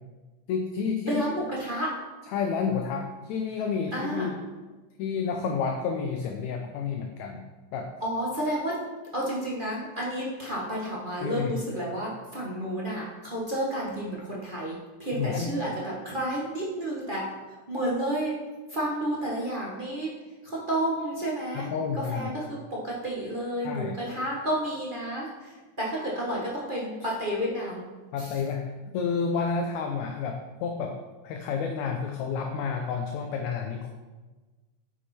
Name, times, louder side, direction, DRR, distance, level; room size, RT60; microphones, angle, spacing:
voice 1, 0.5-1.2 2.3-4.4 5.0-7.4 7.7-7.9 11.2-11.5 15.1-15.5 21.5-22.3 23.6-24.0 28.1-31.0 31.2-33.9, left 5 dB, 75° left, 4 dB, 1.9 m, -30 dB
voice 2, 1.1-1.9 3.9-4.3 8.0-8.8 9.1-17.3 17.7-18.3 18.7-20.1 20.4-21.7 21.9-27.8 28.2-28.4, right 1 dB, 40° right, -5 dB, 0.7 m, -31 dB
9.6 x 7.1 x 4.4 m, 1.2 s
omnidirectional pair, 3.6 m